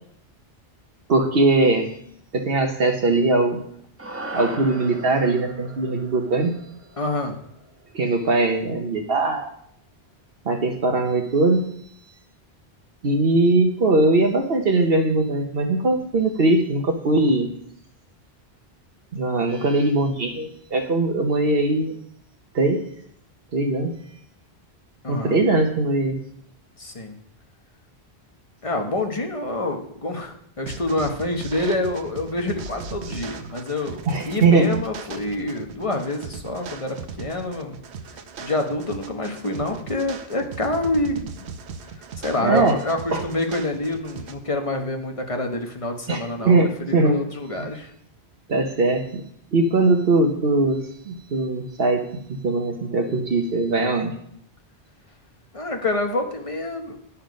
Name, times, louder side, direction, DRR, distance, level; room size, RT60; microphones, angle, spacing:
voice 1, 1.1-1.9 2.3-3.6 4.3-6.5 7.9-9.5 10.4-11.7 13.0-17.5 19.1-22.0 22.5-22.8 23.5-23.9 25.1-26.2 34.1-34.7 42.4-42.8 43.1-43.2 46.1-47.2 47.6-47.7 48.5-49.2 49.5-54.1, right 2 dB, 65° right, 4 dB, 1.1 m, -20 dB
sound 1, 4.0-8.4, right 2 dB, 15° right, 0.7 m, -38 dB
voice 2, 7.0-7.4 25.0-25.4 26.8-27.1 28.6-34.0 34.2-37.8 38.4-41.4 42.2-46.6 46.9-47.9 55.5-57.0, left 2 dB, 30° left, 3 dB, 1.1 m, -27 dB
sound 2, 30.7-44.3, right 6 dB, 90° right, 1.0 m, -38 dB
11.0 x 5.7 x 5.2 m, 0.68 s
omnidirectional pair, 1.1 m